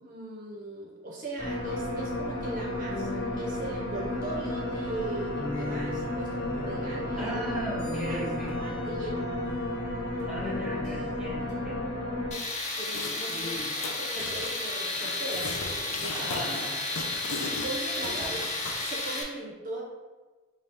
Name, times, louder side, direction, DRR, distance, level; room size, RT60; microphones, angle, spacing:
voice 1, 0.0-7.4 7.9-9.3 12.8-16.6 17.4-19.8, right 2 dB, 40° right, -2 dB, 0.5 m, -39 dB
sound 1, 1.4-12.3, left 1 dB, 55° left, 1.1 m, -32 dB
voice 2, 7.2-8.5 10.3-11.8 13.1-13.7 16.1-16.9 18.0-18.4, right 1 dB, 5° right, -4 dB, 0.8 m, -37 dB
Tools, 12.3-19.2, left 2 dB, 35° left, 0.5 m, -32 dB
sound 2, 12.9-13.3 13.6-14.5 14.8-18.9, left 3 dB, 80° left, 0.5 m, -38 dB
4.1 x 2.3 x 3.4 m, 1.3 s
head